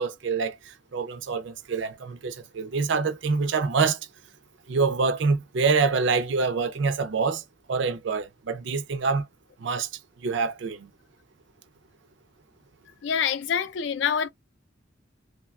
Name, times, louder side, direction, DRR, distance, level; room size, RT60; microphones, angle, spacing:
voice 1, 0.0-4.0 4.7-7.4 7.7-9.3 9.6-9.9 10.2-10.9, right 4 dB, 65° right, 0.4 m, -26 dB
voice 2, 13.0-14.3, left 7 dB, 65° left, 0.4 m, -26 dB
3.0 x 2.2 x 2.3 m
head